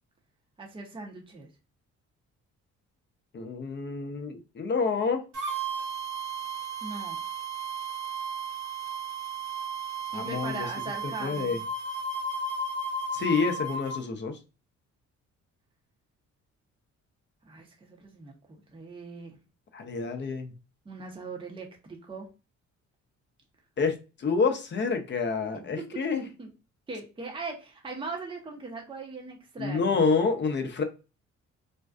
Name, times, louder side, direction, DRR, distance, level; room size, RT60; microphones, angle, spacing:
voice 1, 0.6-1.5 6.8-7.2 10.0-11.6 17.4-19.4 20.8-22.3 25.5-26.5 26.9-30.0, right 3 dB, 15° right, 1 dB, 0.6 m, -40 dB
voice 2, 3.3-5.2 10.1-10.7 11.0-11.6 13.1-14.4 19.7-20.5 23.8-26.2 29.6-30.8, left 4 dB, 40° left, 6 dB, 0.5 m, -28 dB
sound 1, 5.3-14.0, right 3 dB, 80° right, 1.0 m, -34 dB
2.5 x 2.2 x 2.3 m, 0.31 s
cardioid pair, 90°, 30 cm